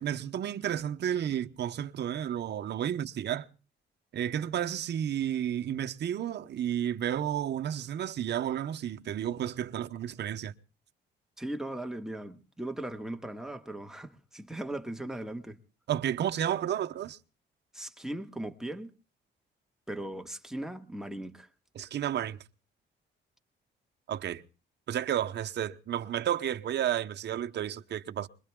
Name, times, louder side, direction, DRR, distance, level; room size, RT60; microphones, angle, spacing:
voice 1, 0.0-3.5 4.1-10.5 15.9-17.2 21.7-22.4 24.1-24.4 24.9-28.3, right 10 dB, 60° right, 0.9 m, -32 dB
voice 2, 11.4-15.6 17.7-18.9 19.9-21.5, right 1 dB, ahead, 1.5 m, -38 dB
25.5 x 22.0 x 2.3 m
cardioid pair, 90°, 20 cm